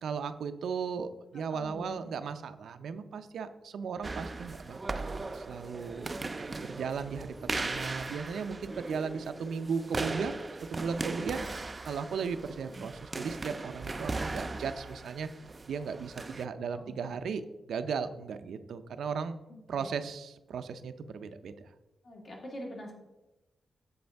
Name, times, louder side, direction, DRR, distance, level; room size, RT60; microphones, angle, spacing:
voice 1, 0.0-10.4 10.7-15.3 15.7-17.4 17.7-19.4 19.7-21.7, right 6 dB, 80° right, 10 dB, 0.5 m, -36 dB
voice 2, 1.5-2.1 16.7-17.0 19.8-19.9 22.0-22.9, left 1 dB, 50° left, -1 dB, 1.9 m, -43 dB
sound 1, 4.0-16.4, right 3 dB, 25° right, 0.3 m, -38 dB
7.8 x 7.4 x 3.4 m, 1.0 s
wide cardioid pair, 135°, 0 cm